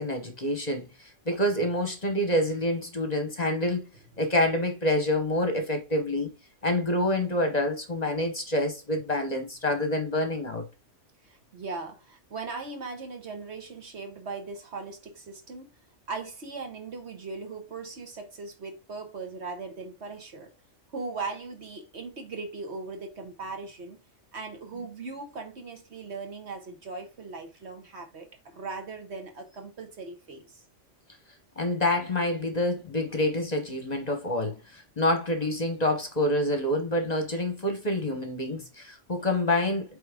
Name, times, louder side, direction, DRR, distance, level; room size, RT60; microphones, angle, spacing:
voice 1, 0.0-3.8 4.2-6.3 6.6-10.6 31.6-39.8, left 1 dB, 35° left, 1.0 m, -27 dB
voice 2, 11.2-15.7 16.1-20.5 20.9-24.0 24.3-30.6, right 4 dB, 60° right, 1.6 m, -39 dB
8.6 x 3.5 x 3.5 m
omnidirectional pair, 1.3 m